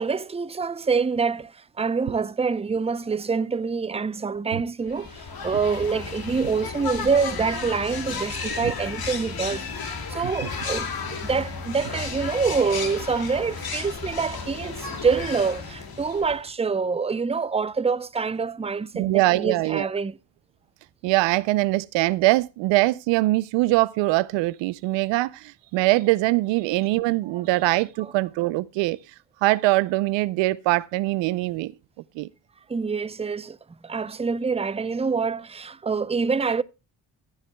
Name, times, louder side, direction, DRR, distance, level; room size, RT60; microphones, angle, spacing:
voice 1, 0.0-9.7 10.1-20.2 28.0-28.1 32.7-33.6 33.8-36.6, right 5 dB, 15° right, 0.6 m, -26 dB
sound 1, 4.9-16.5, left 5 dB, 55° left, 2.4 m, -33 dB
voice 2, 18.9-19.9 21.0-29.0 29.4-31.7 32.2-32.3, right 19 dB, 90° right, 0.6 m, -22 dB
15.0 x 9.7 x 2.2 m
supercardioid pair, 50°, 43 cm